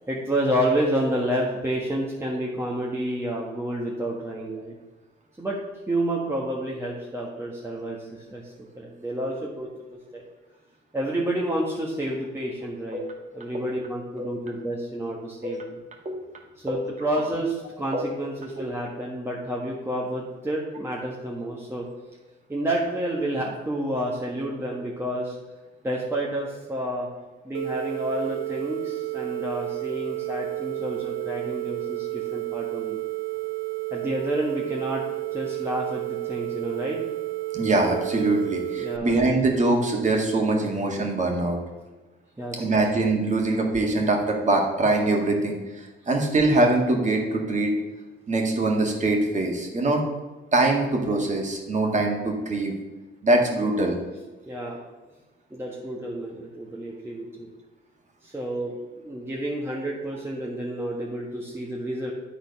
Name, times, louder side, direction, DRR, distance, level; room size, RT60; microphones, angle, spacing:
voice 1, 0.1-4.7 5.4-5.6 5.9-9.7 10.1-10.2 10.9-13.0 13.3-15.6 16.6-21.8 22.5-25.4 25.8-27.1 27.4-33.0 33.9-35.0 35.3-37.0 38.8-39.2 42.4-42.8 54.5-54.8 55.5-57.5 58.2-62.1, right 1 dB, 10° right, -3 dB, 1.3 m, -29 dB
sound 1, 27.5-39.0, right 22 dB, 85° right, 0.6 m, -31 dB
voice 2, 37.5-41.6 42.6-47.7 48.3-50.0 50.5-52.7 53.2-54.0, right 2 dB, 35° right, 1 dB, 2.0 m, -23 dB
10.5 x 4.0 x 5.3 m, 1.2 s
cardioid pair, 90°, 20 cm